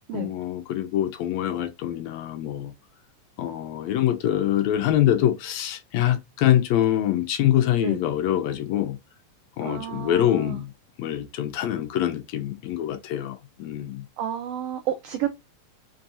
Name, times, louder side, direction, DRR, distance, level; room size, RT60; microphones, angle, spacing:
voice 1, 0.1-2.7 3.4-9.0 9.6-10.7 11.0-14.1, left 12 dB, 80° left, 1.9 m, -24 dB
voice 2, 9.6-10.6 14.2-15.3, right 11 dB, 85° right, 1.3 m, -31 dB
5.3 x 2.8 x 2.4 m
omnidirectional pair, 3.4 m